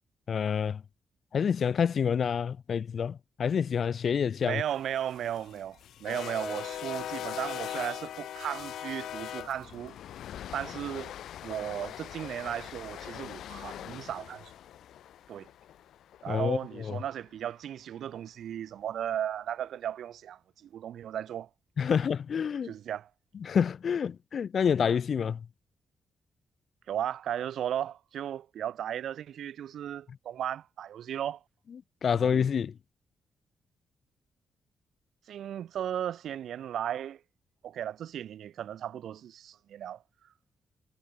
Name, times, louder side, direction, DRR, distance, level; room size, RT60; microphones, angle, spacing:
voice 1, 0.3-0.8 1.3-4.6 16.3-17.0 21.8-22.7 23.4-25.4 32.0-32.7, left 7 dB, 45° left, 1.4 m, -28 dB
voice 2, 4.4-10.0 10.5-11.1 11.4-14.5 15.3-15.5 16.2-21.5 22.6-23.1 26.9-31.4 32.1-32.3 35.3-37.2 37.6-40.0, right 10 dB, 70° right, 0.8 m, -35 dB
sound 1, 4.8-17.0, left 11 dB, 80° left, 5.3 m, -41 dB
wide cardioid pair, 170°, 0 cm